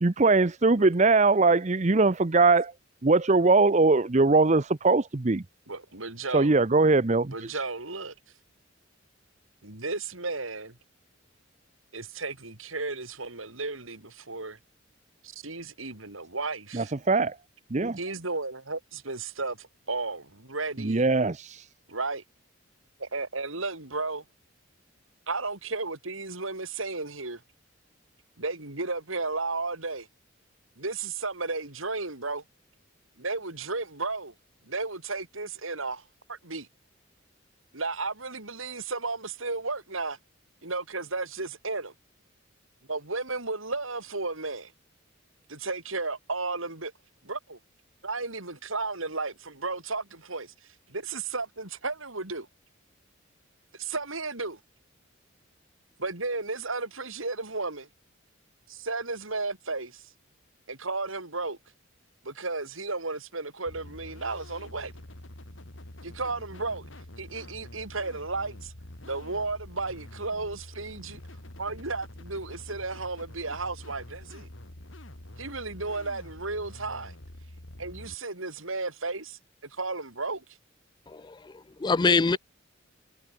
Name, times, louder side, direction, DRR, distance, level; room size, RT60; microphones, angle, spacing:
voice 1, 0.0-2.7 3.0-5.4 6.3-7.6 16.7-17.4 17.7-18.0 20.8-21.7, right 3 dB, 35° right, 0.7 m, -22 dB
voice 2, 5.7-6.5 7.3-8.1 9.6-10.8 11.9-14.6 15.2-16.9 18.0-21.0 21.9-22.2 23.0-24.2 25.3-27.4 28.4-30.1 30.8-32.4 33.2-34.3 34.7-36.0 36.3-36.7 37.7-40.2 40.6-41.9 42.9-44.7 45.5-46.9 47.2-47.6 48.0-50.5 50.9-52.5 53.8-54.6 56.0-57.9 58.7-60.1 60.7-61.6 62.2-64.9 66.0-66.9 67.2-68.7 69.0-71.2 71.6-74.5 75.4-77.1 77.8-80.4 82.1-82.4, right 3 dB, 85° right, 5.0 m, -34 dB
sound 1, 63.7-78.1, left 1 dB, 70° left, 2.7 m, -46 dB
voice 3, 81.1-82.4, left 4 dB, 20° left, 0.4 m, -25 dB
head